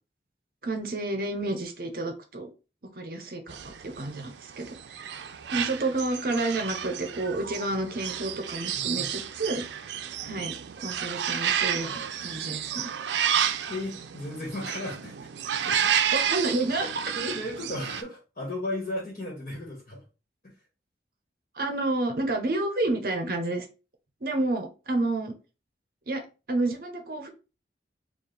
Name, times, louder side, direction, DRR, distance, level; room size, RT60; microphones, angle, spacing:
voice 1, 0.6-2.5 2.9-9.9 10.2-10.6 10.8-12.9 16.1-16.9 21.5-23.7 24.2-25.4 26.1-26.2 26.5-27.3, right 2 dB, 55° right, 5 dB, 0.7 m, -30 dB
sound 1, 3.5-18.0, right 8 dB, 85° right, 0.4 m, -31 dB
voice 2, 8.7-9.1 13.7-15.3 15.6-15.9 17.1-20.0 20.4-20.5, left 1 dB, 45° left, -4 dB, 1.4 m, -35 dB
4.2 x 2.4 x 3.3 m, 0.31 s
head